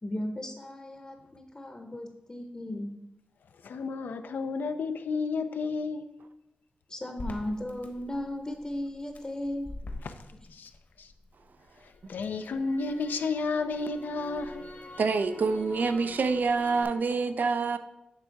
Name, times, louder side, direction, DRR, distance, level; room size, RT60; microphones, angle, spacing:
voice 1, 0.0-2.9 6.9-9.7, left 1 dB, 25° left, 4 dB, 0.7 m, -36 dB
voice 2, 3.6-6.0 10.0-10.1 10.5-10.7 11.0-11.1 12.1-14.7, left 4 dB, 90° left, 8 dB, 0.4 m, -31 dB
Crackle, 7.2-11.3 11.7-16.8, left 1 dB, 65° left, 1.2 m, -44 dB
voice 3, 15.0-17.8, right 4 dB, 65° right, 10 dB, 0.4 m, -26 dB
8.8 x 3.4 x 4.5 m, 0.92 s
cardioid pair, 65°, 3 cm